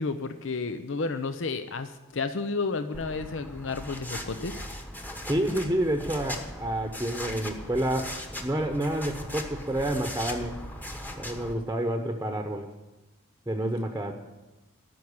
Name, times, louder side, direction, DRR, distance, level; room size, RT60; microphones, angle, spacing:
voice 1, 0.0-4.6, left 4 dB, 65° left, 9 dB, 0.7 m, -31 dB
sound 1, 2.9-11.5, left 1 dB, 10° left, 1.2 m, -39 dB
voice 2, 5.3-10.6 11.2-12.7 13.5-14.1, right 1 dB, 10° right, 4 dB, 1.0 m, -29 dB
13.5 x 6.0 x 9.6 m, 1.1 s
head